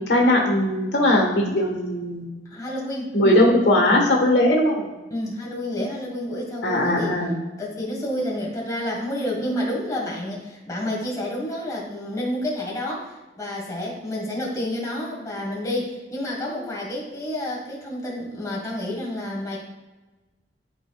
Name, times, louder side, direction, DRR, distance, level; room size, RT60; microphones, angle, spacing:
voice 1, 0.0-2.2 3.1-4.8 6.6-7.3, left 1 dB, 90° left, 0 dB, 1.4 m, -19 dB
voice 2, 2.4-3.1 5.1-7.2 7.6-19.6, left 1 dB, 20° left, -3 dB, 1.7 m, -29 dB
11.5 x 4.5 x 2.4 m, 1.2 s
head